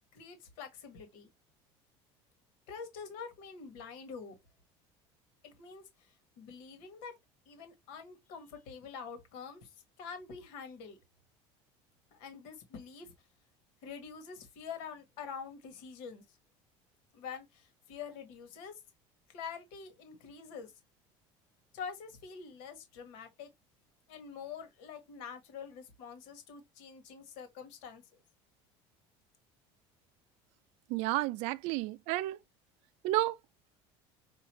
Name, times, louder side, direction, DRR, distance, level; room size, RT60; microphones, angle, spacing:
voice 1, 0.1-1.3 2.7-4.3 5.4-7.1 7.4-11.0 12.1-13.1 13.8-16.2 17.1-18.8 19.3-20.7 21.7-23.5 24.1-28.2, left 6 dB, 75° left, 1.6 m, -46 dB
voice 2, 30.9-32.4 33.0-33.4, right 17 dB, 65° right, 0.4 m, -31 dB
5.8 x 2.7 x 3.0 m
cardioid pair, 155°, 12 cm